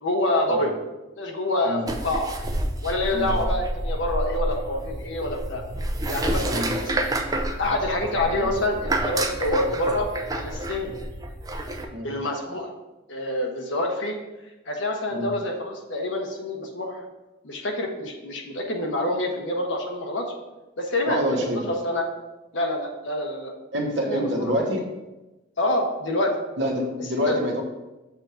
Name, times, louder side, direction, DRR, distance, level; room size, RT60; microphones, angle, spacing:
voice 1, 0.0-0.7 1.1-2.3 2.8-5.6 6.1-7.1 7.6-10.9 12.0-12.7 13.1-14.1 14.7-17.0 17.4-20.3 20.8-22.0 22.5-23.5 24.0-24.5 25.6-26.3 27.2-27.4, left 1 dB, 70° left, 1 dB, 1.0 m, -27 dB
sound 1, 1.9-11.9, right 1 dB, 20° right, 0.5 m, -29 dB
voice 2, 21.1-21.6 23.7-24.9 26.6-27.6, equal, 65° right, 1 dB, 1.1 m, -26 dB
7.0 x 2.6 x 5.7 m, 1.1 s
head